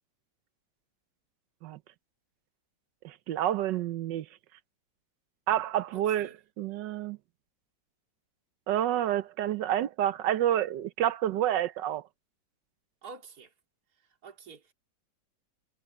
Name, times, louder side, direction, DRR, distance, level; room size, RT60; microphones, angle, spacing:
voice 1, 3.0-4.3 5.5-7.2 8.7-12.0, right 11 dB, 80° right, 1.4 m, -29 dB
voice 2, 5.9-6.3 13.0-13.5 14.2-14.7, right 5 dB, 55° right, 3.0 m, -48 dB
omnidirectional pair, 2.0 m